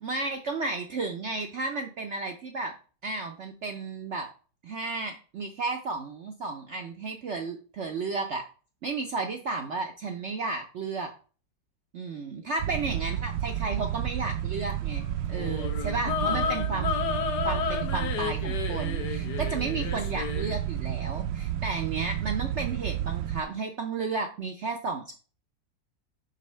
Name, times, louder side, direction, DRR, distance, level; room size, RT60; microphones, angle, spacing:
voice 1, 0.0-2.8 3.0-4.3 4.6-8.4 8.8-11.1 11.9-16.9 17.4-25.1, right 3 dB, 65° right, 4 dB, 0.7 m, -33 dB
sound 1, 12.6-23.4, right 11 dB, 80° right, 1.2 m, -31 dB
sound 2, 15.3-20.6, left 7 dB, 70° left, 1.4 m, -32 dB
5.3 x 4.0 x 5.4 m, 0.38 s
omnidirectional pair, 1.9 m